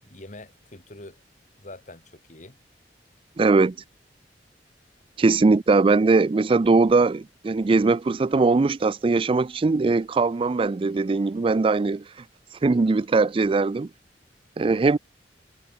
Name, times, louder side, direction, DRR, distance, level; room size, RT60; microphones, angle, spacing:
voice 1, 0.1-1.2 1.6-2.6, left 2 dB, 45° left, 3.1 m, -44 dB
voice 2, 3.4-3.8 5.2-12.0 12.6-13.9 14.6-15.0, right 3 dB, 30° right, 0.4 m, -20 dB
head